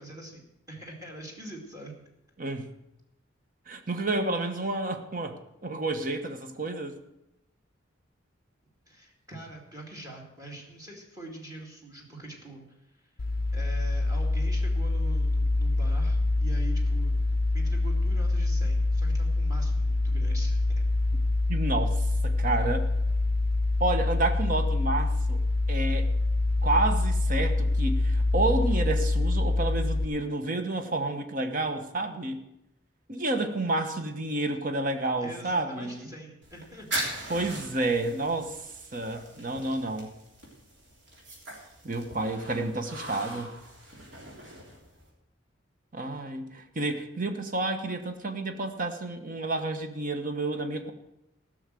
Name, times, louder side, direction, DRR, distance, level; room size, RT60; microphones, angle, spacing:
voice 1, 0.0-1.9 8.9-12.6 13.5-20.7 35.2-36.9, right 1 dB, 20° right, 1 dB, 2.3 m, -44 dB
voice 2, 2.4-2.7 3.7-7.0 21.5-22.9 23.8-25.4 25.7-26.1 26.6-32.4 33.1-36.1 37.3-38.7 38.9-40.1 41.8-43.6 45.9-50.9, right 2 dB, 45° right, 7 dB, 1.1 m, -30 dB
sound 1, 13.2-30.0, left 2 dB, 50° left, 0.5 m, -25 dB
sound 2, 36.4-45.1, right 1 dB, 65° right, 3.5 m, -40 dB
15.0 x 6.4 x 7.6 m, 0.85 s
head